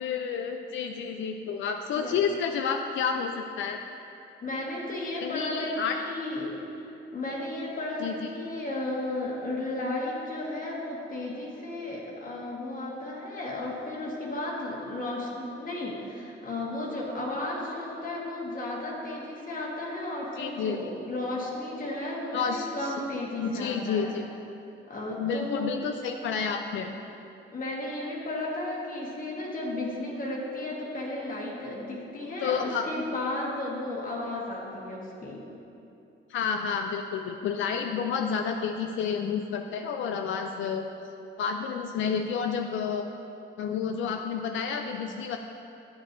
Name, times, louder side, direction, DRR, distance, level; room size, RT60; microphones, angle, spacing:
voice 1, 0.0-3.8 5.2-6.0 8.0-8.3 20.4-20.8 22.3-22.9 23.4-24.2 25.2-26.9 32.4-32.9 36.3-40.9 41.4-43.1 43.6-45.4, left 6 dB, 75° left, 4 dB, 0.4 m, -30 dB
voice 2, 4.4-6.5 6.8-24.1 24.9-25.8 27.5-35.4, left 2 dB, 45° left, -3 dB, 1.3 m, -34 dB
8.7 x 7.8 x 2.6 m, 2.8 s
cardioid pair, 90°, 20 cm